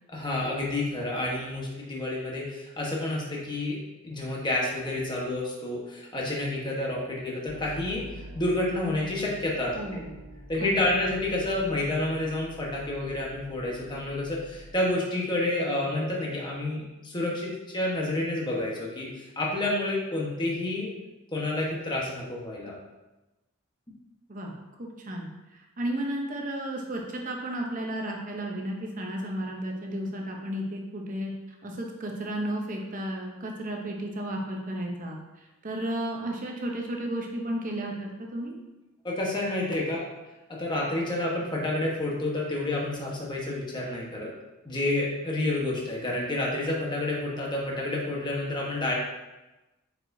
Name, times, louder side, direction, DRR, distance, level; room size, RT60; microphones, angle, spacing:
voice 1, 0.1-3.8 4.0-8.0 8.3-9.7 10.5-20.9 21.3-22.7 39.0-40.1 40.5-44.3 44.6-48.9, left 2 dB, 20° left, -3 dB, 1.2 m, -29 dB
sound 1, 7.5-14.7, right 1 dB, 80° right, 0.8 m, -46 dB
voice 2, 9.7-10.1 10.6-10.8 24.3-24.5 24.8-31.3 31.6-38.5, right 1 dB, 40° right, 0 dB, 0.8 m, -33 dB
8.4 x 4.7 x 2.7 m, 1.1 s
head